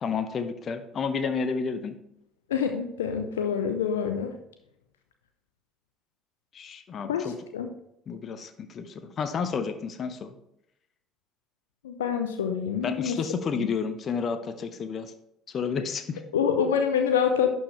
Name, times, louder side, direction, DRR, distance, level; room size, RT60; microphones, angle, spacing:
voice 1, 0.0-2.0 6.5-7.4 8.1-10.4 12.8-15.1 15.5-16.2, left 5 dB, 40° left, 9 dB, 0.8 m, -31 dB
voice 2, 2.5-4.3 7.1-7.7 11.8-13.2 13.6-13.7 16.3-17.5, left 7 dB, 75° left, 6 dB, 0.5 m, -26 dB
11.0 x 4.6 x 3.2 m, 0.80 s
figure-of-eight pair, 55°, 0 cm